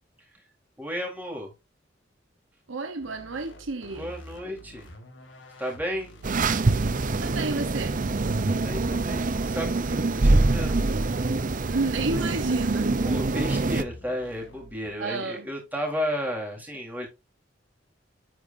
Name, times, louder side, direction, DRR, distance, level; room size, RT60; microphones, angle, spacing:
voice 1, 0.8-1.5 4.0-4.9 5.6-6.1 8.5-10.8 13.0-17.1, equal, 10° right, 3.9 m, -33 dB
voice 2, 2.7-4.1 7.2-8.0 11.7-12.9 15.0-15.5, right 3 dB, 90° right, 1.1 m, -30 dB
sound 1, 3.0-15.0, left 1 dB, 75° left, 2.2 m, -47 dB
sound 2, 6.2-13.8, right 3 dB, 45° right, 0.7 m, -25 dB
9.2 x 8.6 x 2.7 m
head